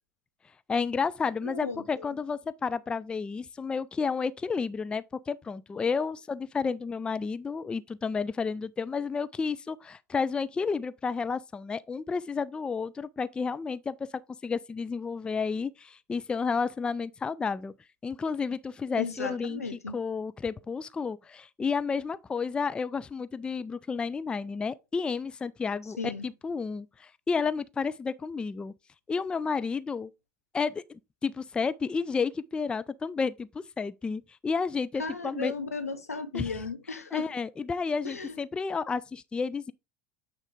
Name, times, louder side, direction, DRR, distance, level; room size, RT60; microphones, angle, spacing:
voice 1, 0.7-14.1 14.4-17.7 18.0-19.6 19.9-28.7 29.1-30.1 30.5-35.5 36.3-36.5 37.1-39.7, left 5 dB, 10° left, 0.3 m, -31 dB
voice 2, 1.4-2.1 19.0-19.9 26.0-26.3 35.0-37.3 38.0-38.4, left 4 dB, 85° left, 0.7 m, -35 dB
8.8 x 3.7 x 3.5 m
figure-of-eight pair, 80°, 8 cm